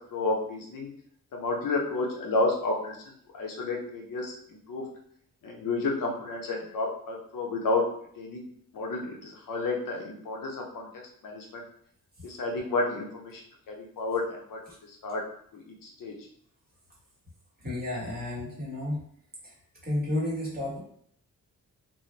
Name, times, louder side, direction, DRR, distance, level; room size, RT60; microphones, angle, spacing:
voice 1, 0.1-0.9 1.3-3.0 3.3-4.9 5.4-7.8 8.2-8.5 8.7-11.6 12.2-13.4 13.7-14.6 14.9-15.2 15.5-16.1, left 3 dB, 65° left, 0 dB, 0.6 m, -31 dB
voice 2, 17.6-19.0 19.4-19.5 19.8-20.8, left 1 dB, 25° right, -6 dB, 1.3 m, -31 dB
2.4 x 2.0 x 3.1 m, 0.66 s
wide cardioid pair, 110°, 35 cm